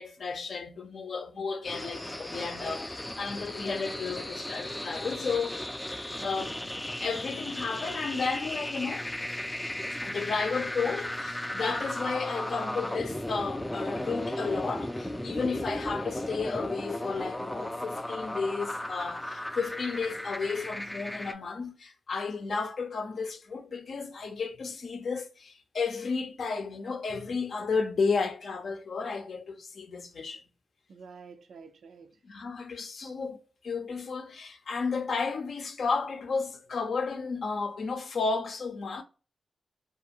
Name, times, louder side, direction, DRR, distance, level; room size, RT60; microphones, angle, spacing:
voice 1, 0.0-5.7 5.9-6.6 6.9-9.1 10.0-30.4 32.2-39.0, left 4 dB, 65° left, 0.5 m, -33 dB
sound 1, 1.6-21.3, left 1 dB, 10° left, 0.3 m, -36 dB
voice 2, 6.2-6.5 30.9-32.2, right 5 dB, 85° right, 0.4 m, -49 dB
2.5 x 2.4 x 2.7 m
cardioid pair, 85°, 0 cm